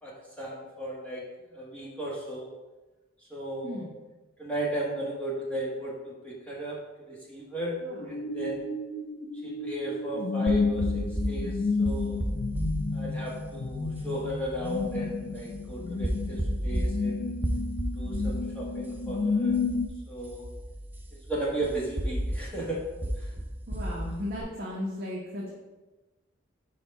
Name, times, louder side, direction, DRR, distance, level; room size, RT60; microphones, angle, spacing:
voice 1, 0.0-2.5 3.3-3.9 4.4-6.8 7.1-7.8 8.0-8.7 9.4-12.2 12.9-17.3 17.9-19.6 20.1-20.5 21.3-22.8 23.2-23.3, right 1 dB, 5° left, -6 dB, 1.4 m, -35 dB
sound 1, 7.6-19.9, left 4 dB, 50° left, 0.5 m, -31 dB
sound 2, 10.5-24.4, equal, 10° right, 0.4 m, -34 dB
voice 2, 23.7-25.5, left 1 dB, 45° right, -5 dB, 1.0 m, -36 dB
5.0 x 4.2 x 5.4 m, 1.1 s
head